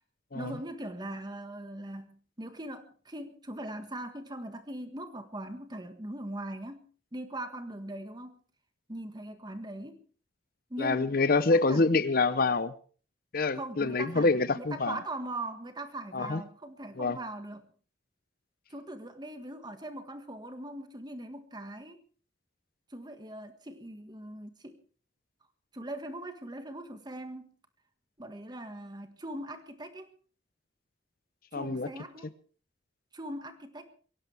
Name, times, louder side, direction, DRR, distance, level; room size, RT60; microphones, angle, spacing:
voice 1, 0.3-6.8 7.1-8.4 8.9-10.0 10.7-11.1 11.5-11.9 13.5-17.7 18.7-22.0 22.9-24.8 25.7-27.5 28.2-30.1 31.5-32.3 33.1-33.9, right 1 dB, 25° right, 8 dB, 1.7 m, -40 dB
voice 2, 10.8-12.7 13.3-15.0 16.1-16.4 17.0-17.2 31.5-31.9, left 3 dB, 50° left, 15 dB, 0.8 m, -26 dB
22.5 x 17.0 x 3.4 m, 0.40 s
head